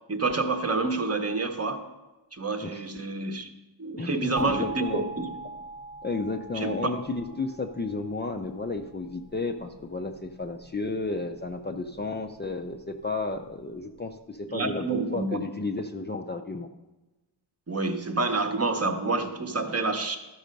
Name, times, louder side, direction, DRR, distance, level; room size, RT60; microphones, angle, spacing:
voice 1, 0.1-1.8 2.3-3.5 3.8-5.3 6.5-6.9 14.5-15.4 17.7-20.2, right 3 dB, 35° right, 6 dB, 0.9 m, -28 dB
voice 2, 4.0-5.0 6.0-16.7, left 3 dB, 25° left, 4 dB, 0.5 m, -32 dB
sound 1, 4.4-9.1, right 2 dB, 75° right, 1.0 m, -40 dB
13.0 x 5.5 x 5.2 m, 1.1 s
wide cardioid pair, 135°, 44 cm